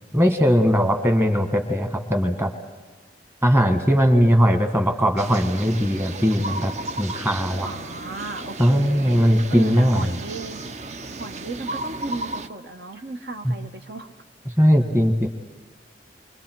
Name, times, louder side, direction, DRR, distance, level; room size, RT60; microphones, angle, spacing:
voice 1, 0.1-2.5 3.4-6.7 7.0-7.7 8.6-10.1 13.4-13.5 14.6-15.3, equal, 15° right, 5 dB, 1.5 m, -19 dB
sound 1, 5.2-12.5, right 2 dB, 40° right, 0.6 m, -34 dB
voice 2, 7.6-10.7 11.2-14.1, right 2 dB, 60° right, 5 dB, 1.0 m, -35 dB
29.0 x 23.5 x 4.6 m, 1.4 s
head